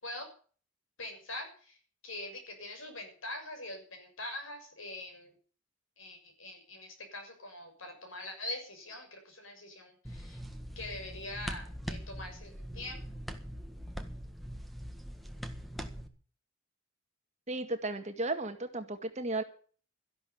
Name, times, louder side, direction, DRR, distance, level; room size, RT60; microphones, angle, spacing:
voice 1, 1.0-1.8 2.0-5.3 6.0-10.4 10.7-13.0, left 1 dB, 75° left, 4 dB, 6.6 m, -43 dB
sound 1, 10.0-16.1, equal, ahead, 1.6 m, -42 dB
voice 2, 17.5-19.4, right 2 dB, 35° right, 7 dB, 1.9 m, -34 dB
13.5 x 11.5 x 7.1 m, 0.42 s
head